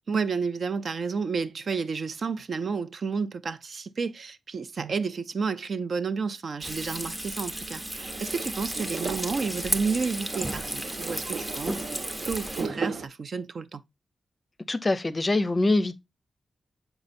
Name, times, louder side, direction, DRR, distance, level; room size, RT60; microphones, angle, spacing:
voice 1, 0.1-12.0 12.2-13.8, right 5 dB, 55° right, 0.4 m, -31 dB
Frying (food), 6.6-12.7, right 1 dB, 15° right, 0.6 m, -34 dB
sound 1, 8.0-13.1, right 4 dB, 75° right, 1.3 m, -37 dB
voice 2, 14.7-15.9, left 2 dB, 25° left, 0.5 m, -24 dB
7.0 x 5.3 x 2.5 m
wide cardioid pair, 140°, 0 cm